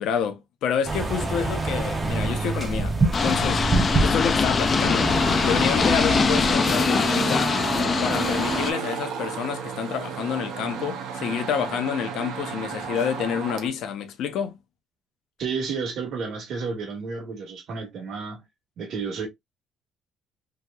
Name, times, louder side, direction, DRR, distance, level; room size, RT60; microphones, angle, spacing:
voice 1, 0.0-2.9 3.2-3.6 4.0-5.1 5.4-7.5 8.0-14.6, left 8 dB, 70° left, 0.7 m, -28 dB
sound 1, 0.8-6.6, right 2 dB, 20° right, 0.6 m, -26 dB
sound 2, 3.1-8.7, left 5 dB, 30° left, 0.3 m, -22 dB
sound 3, 4.8-13.7, right 6 dB, 80° right, 0.8 m, -32 dB
voice 2, 15.4-18.4 18.8-19.3, right 5 dB, 55° right, 1.1 m, -31 dB
2.9 x 2.8 x 2.2 m
cardioid pair, 155°, 0 cm